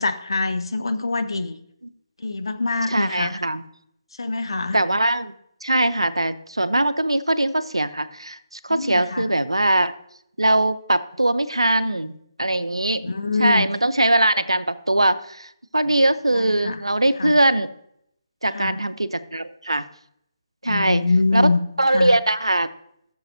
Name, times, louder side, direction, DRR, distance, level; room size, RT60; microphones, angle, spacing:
voice 1, 0.0-1.6 2.2-3.3 4.2-4.8 8.7-9.3 13.0-13.7 15.9-16.0 16.3-16.8 17.2-17.4 18.5-18.8 20.6-21.6 21.9-22.1, left 3 dB, 70° left, 8 dB, 0.8 m, -24 dB
voice 2, 2.9-3.6 4.7-5.3 5.6-9.9 10.4-13.1 13.4-17.7 18.4-19.8 20.6-21.0 21.3-21.4 21.8-22.7, right 1 dB, 90° right, 13 dB, 0.5 m, -21 dB
16.0 x 6.9 x 2.6 m, 0.73 s
figure-of-eight pair, 145°, 3 cm